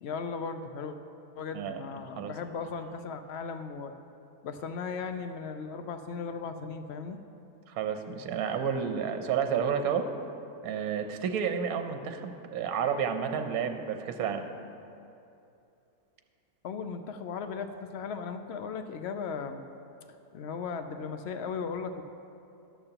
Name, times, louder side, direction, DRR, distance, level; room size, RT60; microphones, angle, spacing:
voice 1, 0.0-1.0 1.4-3.9 4.4-7.2 16.6-19.6 20.3-22.0, left 5 dB, 75° left, 8 dB, 0.6 m, -37 dB
voice 2, 7.7-10.1 10.6-14.4, right 7 dB, 70° right, 6 dB, 1.1 m, -31 dB
13.5 x 12.0 x 2.9 m, 2.6 s
omnidirectional pair, 1.7 m